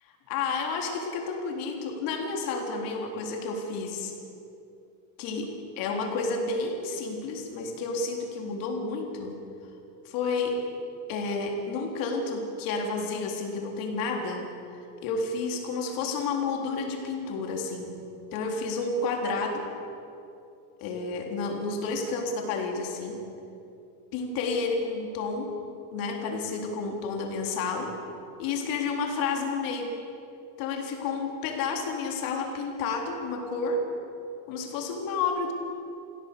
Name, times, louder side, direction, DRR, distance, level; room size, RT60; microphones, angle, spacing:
voice 1, 0.3-4.1 5.2-9.3 10.0-10.6 11.1-14.5 15.0-17.9 18.3-19.7 20.8-23.2 24.1-25.5 25.9-27.9 28.4-29.9 30.6-33.8 34.5-35.5, left 4 dB, 45° left, 1 dB, 3.8 m, -30 dB
27.5 x 16.5 x 6.8 m, 2.7 s
supercardioid pair, 150°, 47 cm